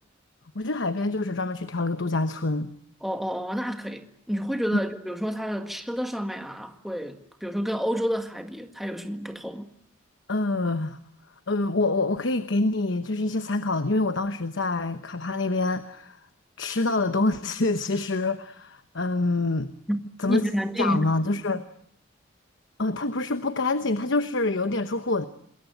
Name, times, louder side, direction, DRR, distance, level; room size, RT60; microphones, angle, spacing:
voice 1, 0.5-2.7 10.3-11.0 11.5-16.2 16.6-19.7 20.2-20.4 20.8-21.6 22.8-25.2, left 2 dB, 60° left, 1.1 m, -26 dB
voice 2, 3.0-9.7 19.9-20.0 20.3-21.1, equal, ahead, 1.8 m, -29 dB
28.0 x 21.5 x 8.1 m
head